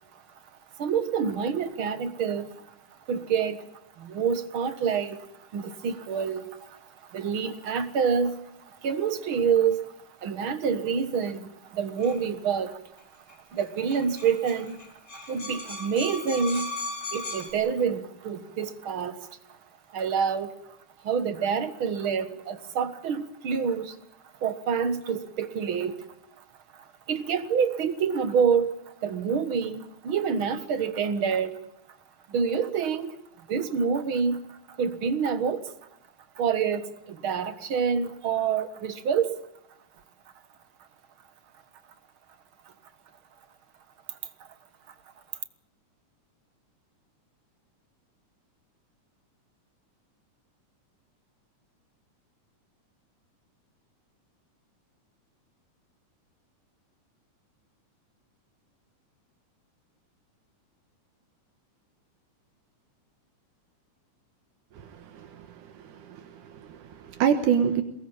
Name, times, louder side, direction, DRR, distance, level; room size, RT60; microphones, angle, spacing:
voice 1, 0.8-2.7 3.1-3.7 4.0-5.3 5.5-9.9 10.2-12.8 13.3-14.8 15.1-16.7 17.1-19.6 19.9-20.8 21.0-24.0 24.4-26.1 26.4-26.5 26.7-31.6 32.3-35.7 36.4-39.4 44.1-44.5, right 6 dB, 50° right, 11 dB, 1.8 m, -27 dB
sound 1, 12.0-12.2 13.3-13.4 13.6-13.7 13.9-17.5, left 2 dB, 25° left, 5.0 m, -37 dB
voice 2, 65.1-65.5 65.8-67.8, right 8 dB, 80° right, 7 dB, 2.8 m, -27 dB
22.5 x 20.0 x 8.8 m, 0.82 s
omnidirectional pair, 3.6 m